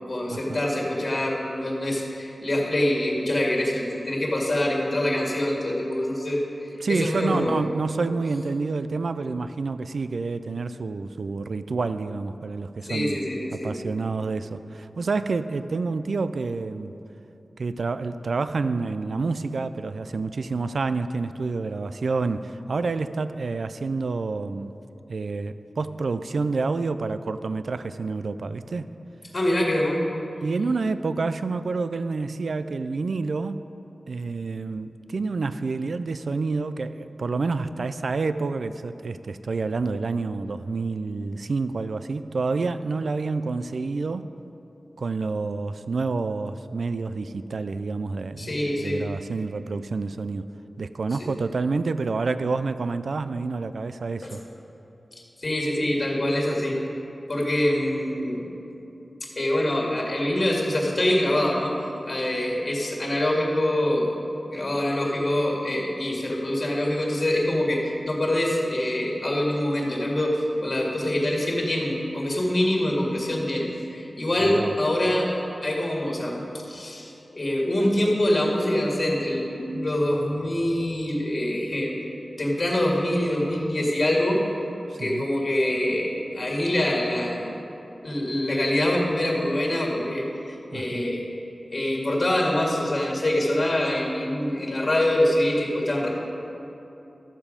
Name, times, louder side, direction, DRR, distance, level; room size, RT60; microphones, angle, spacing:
voice 1, 0.1-6.4 6.9-7.6 12.8-13.9 29.3-30.0 48.4-49.0 51.2-51.3 54.2-54.3 55.4-56.8 57.3-58.5 59.2-61.8 62.0-64.1 64.5-75.3 75.6-81.9 82.4-84.4 85.0-87.5 88.0-90.3 90.7-91.2 91.7-96.1, left 1 dB, 40° left, -2 dB, 2.0 m, -25 dB
voice 2, 6.8-13.2 13.5-16.9 17.6-24.7 25.1-28.9 30.4-33.6 34.1-44.3 45.0-50.5 50.8-54.4 74.4-74.8 84.9-85.3 90.7-91.0, right 4 dB, 75° right, 12 dB, 0.3 m, -28 dB
13.5 x 7.2 x 5.1 m, 3.0 s
wide cardioid pair, 105°, 0 cm